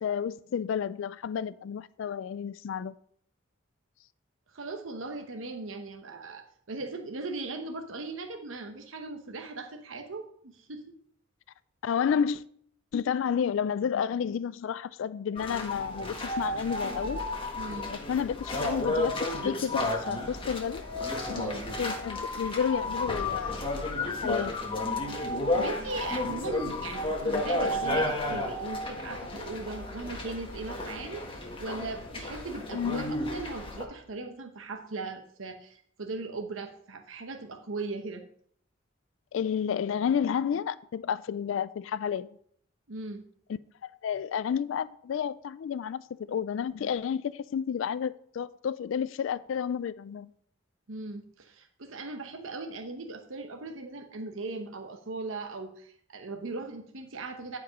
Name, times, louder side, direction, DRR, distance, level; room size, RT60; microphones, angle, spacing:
voice 1, 0.0-2.9 11.8-12.4 12.9-17.2 17.9-20.8 21.3-21.5 21.8-23.6 24.2-24.5 32.7-33.0 39.3-42.3 43.8-50.3, left 7 dB, 70° left, 0.3 m, -31 dB
voice 2, 4.5-10.8 17.6-17.9 21.3-21.6 25.5-38.2 42.9-43.2 50.9-57.6, right 3 dB, 80° right, 0.9 m, -38 dB
sound 1, 15.4-33.8, left 2 dB, 25° left, 1.6 m, -32 dB
10.5 x 4.9 x 5.1 m
head